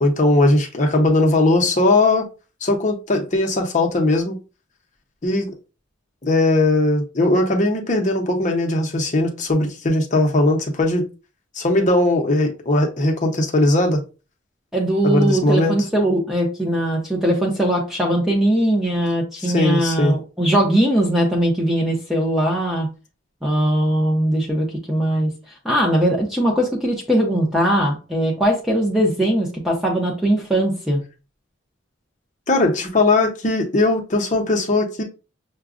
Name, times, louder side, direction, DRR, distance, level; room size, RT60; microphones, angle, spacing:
voice 1, 0.0-2.3 2.6-4.4 5.2-5.5 6.2-11.0 11.5-14.0 15.0-15.7 19.4-20.1 32.5-35.0, left 2 dB, 35° left, 0.7 m, -19 dB
voice 2, 14.7-22.9 23.4-25.3 25.6-31.0, right 1 dB, ahead, 0.7 m, -20 dB
5.8 x 2.2 x 2.5 m
head